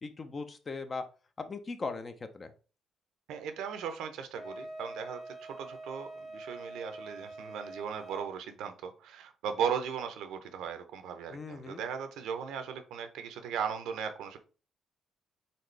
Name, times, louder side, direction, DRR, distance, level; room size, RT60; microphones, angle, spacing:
voice 1, 0.0-1.0 1.4-2.5 11.3-11.8, left 4 dB, 35° left, 8 dB, 0.7 m, -39 dB
voice 2, 3.3-14.4, right 7 dB, 90° right, 8 dB, 0.7 m, -37 dB
Wind instrument woodwind instrument, 4.3-8.3, right 2 dB, 20° left, 1.2 m, -45 dB
4.2 x 3.7 x 3.3 m, 0.35 s
cardioid pair, 90°, 0 cm